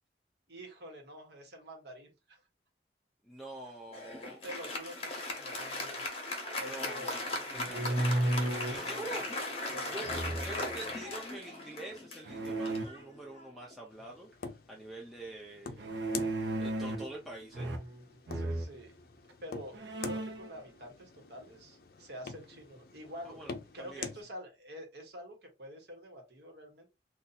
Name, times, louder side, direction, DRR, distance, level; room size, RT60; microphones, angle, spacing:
voice 1, 0.5-2.4 4.4-6.0 6.6-7.3 7.8-8.3 9.7-10.2 10.5-10.9 18.3-19.0 19.4-23.5 23.7-26.9, equal, 65° right, 2 dB, 1.1 m, -47 dB
voice 2, 3.2-4.4 6.6-9.3 9.9-10.1 10.4-15.9 16.6-17.7 23.2-23.5 23.8-24.1, right 2 dB, ahead, -3 dB, 0.5 m, -46 dB
Applause, 3.9-13.7, left 2 dB, 35° left, 0.9 m, -38 dB
sound 1, 7.5-8.9 10.0-10.8 12.2-12.9 15.8-17.2 17.5-18.0 18.3-18.7 19.3-19.4 19.7-20.5, right 1 dB, 85° right, 0.7 m, -33 dB
sound 2, 13.9-24.2, left 4 dB, 55° left, 0.4 m, -46 dB
2.7 x 2.3 x 4.0 m, 0.26 s
head